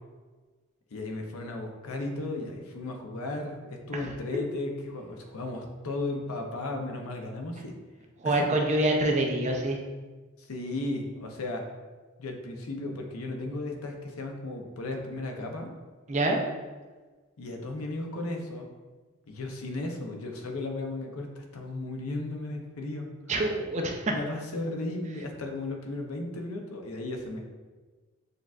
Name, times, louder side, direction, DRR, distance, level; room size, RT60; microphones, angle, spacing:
voice 1, 0.9-7.7 8.2-8.5 10.4-11.6 12.2-15.7 17.4-18.7 19.3-23.1 24.1-27.4, left 2 dB, 80° left, 2 dB, 0.6 m, -35 dB
voice 2, 8.2-9.8 16.1-16.4 23.3-24.1, right 1 dB, 30° right, 2 dB, 0.4 m, -26 dB
6.3 x 2.4 x 2.4 m, 1.3 s
head